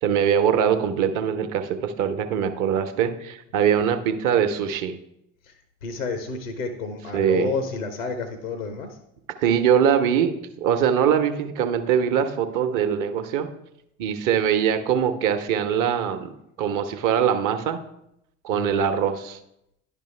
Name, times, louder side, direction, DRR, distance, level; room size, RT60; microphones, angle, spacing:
voice 1, 0.0-5.0 7.1-7.5 9.4-13.5 14.0-16.3 16.6-17.8 18.4-19.4, right 8 dB, 50° right, 8 dB, 0.8 m, -22 dB
voice 2, 5.4-9.0 18.5-18.7, left 4 dB, 90° left, 8 dB, 0.7 m, -31 dB
10.5 x 5.4 x 3.2 m, 0.80 s
figure-of-eight pair, 50°, 40 cm